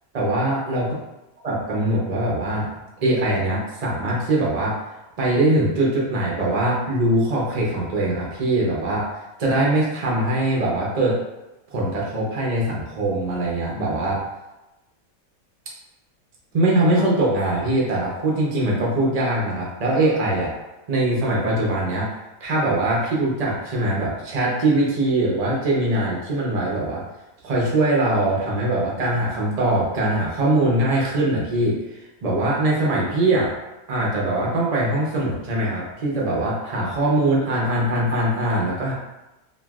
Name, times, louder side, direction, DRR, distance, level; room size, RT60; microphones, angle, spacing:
voice 1, 0.1-0.8 1.4-2.7 3.0-4.8 5.2-9.1 9.4-11.2 11.7-14.3 16.5-20.5 20.9-22.1 22.4-27.0 27.4-31.7 32.2-33.5 33.9-38.9, right 1 dB, 50° right, -4 dB, 0.4 m, -22 dB
3.0 x 2.5 x 2.3 m, 1.0 s
omnidirectional pair, 1.5 m